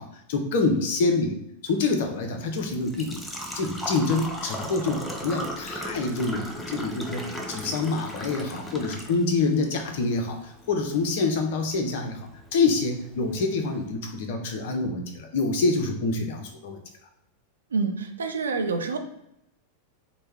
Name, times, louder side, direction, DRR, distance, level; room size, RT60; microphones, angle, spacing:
voice 1, 0.0-3.2 3.5-12.2 12.5-16.8, left 3 dB, 50° left, 5 dB, 0.7 m, -26 dB
Engine / Trickle dribble / Fill (with liquid), 1.9-13.9, equal, 10° left, 0.6 m, -38 dB
voice 2, 17.7-19.0, right 4 dB, 70° right, 7 dB, 0.5 m, -27 dB
4.2 x 2.2 x 3.4 m, 0.81 s
figure-of-eight pair, 90°, 0 cm